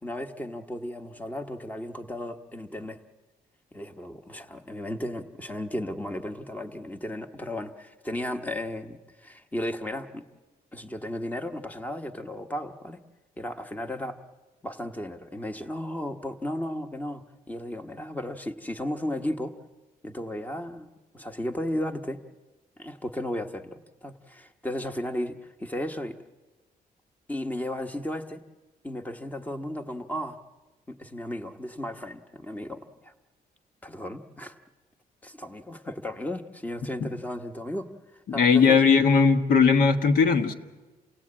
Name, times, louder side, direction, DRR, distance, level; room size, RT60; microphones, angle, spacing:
voice 1, 0.0-3.0 3.7-10.2 10.7-13.0 13.4-14.2 14.6-19.5 20.0-22.2 22.8-26.2 27.3-28.4 28.8-30.4 30.9-33.1 33.8-34.6 35.2-37.9 38.3-38.8, left 1 dB, 10° left, 7 dB, 1.1 m, -34 dB
voice 2, 38.3-40.5, left 5 dB, 70° left, 6 dB, 1.5 m, -19 dB
28.5 x 17.0 x 8.8 m, 1.3 s
cardioid pair, 150°, 15 cm